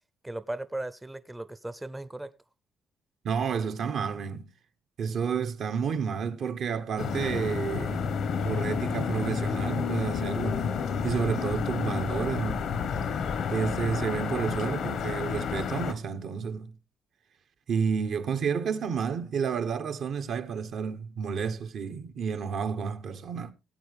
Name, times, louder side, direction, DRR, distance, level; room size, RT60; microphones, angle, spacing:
voice 1, 0.2-2.3, right 1 dB, 10° right, 0.6 m, -37 dB
voice 2, 3.2-4.5 5.0-8.2 8.4-10.8 11.0-12.7 13.5-16.7 17.7-23.5, right 6 dB, 65° right, 0.9 m, -30 dB
sound 1, 7.0-15.9, left 6 dB, 75° left, 1.2 m, -30 dB
18.0 x 8.0 x 3.4 m
cardioid pair, 90°, 0 cm